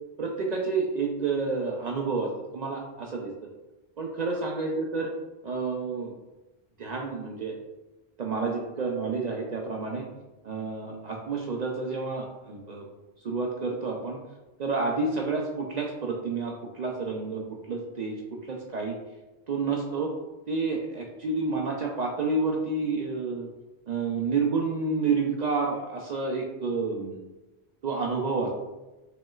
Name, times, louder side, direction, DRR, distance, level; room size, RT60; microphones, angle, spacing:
voice 1, 0.2-3.3 4.0-5.1 5.4-6.1 6.8-7.5 8.2-10.0 10.4-12.9 13.2-14.2 14.6-17.4 17.7-18.1 18.4-19.0 19.5-20.1 20.5-23.5 23.9-27.2 27.8-28.5, right 4 dB, 55° right, 0 dB, 0.5 m, -29 dB
4.8 x 3.0 x 2.3 m, 1.1 s
omnidirectional pair, 1.1 m